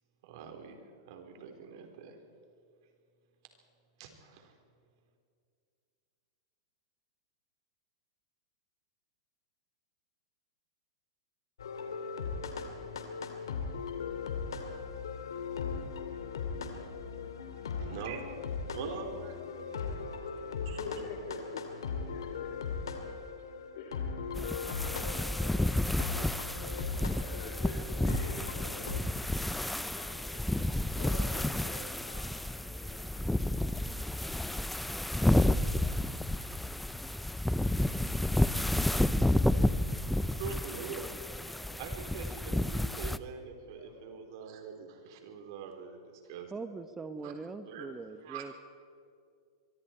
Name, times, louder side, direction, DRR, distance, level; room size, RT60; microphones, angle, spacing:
voice 1, 0.2-2.2 4.0-4.5 17.8-18.3 18.7-19.7 20.0-20.3 20.6-20.8 40.4-41.0 41.8-46.5 47.2-47.3 47.7-47.9 48.2-48.5, right 6 dB, 60° right, 4 dB, 3.8 m, -44 dB
sound 1, 11.6-29.0, left 5 dB, 90° left, 2.4 m, -39 dB
voice 2, 19.8-23.0 23.4-32.4 32.7-33.0 43.7-44.1, left 3 dB, 65° left, -2 dB, 3.8 m, -48 dB
sound 2, 24.3-43.2, left 1 dB, 5° left, 0.6 m, -31 dB
voice 3, 46.5-48.5, right 4 dB, 15° right, 10 dB, 1.0 m, -42 dB
24.5 x 23.5 x 4.5 m, 2.4 s
hypercardioid pair, 120°, 2 cm